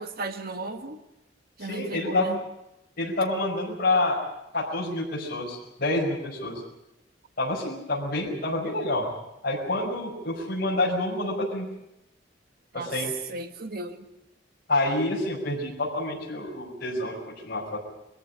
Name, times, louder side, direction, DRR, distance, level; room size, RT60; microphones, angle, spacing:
voice 1, 0.2-1.0 1.6-2.4 12.8-12.9 13.3-14.0, right 2 dB, 55° right, 7 dB, 1.7 m, -34 dB
voice 2, 1.6-2.3 3.0-4.2 4.5-6.6 7.4-9.1 9.4-11.7 12.7-13.1 14.7-17.8, left 2 dB, 55° left, -4 dB, 5.3 m, -28 dB
22.0 x 14.5 x 10.0 m, 0.89 s
head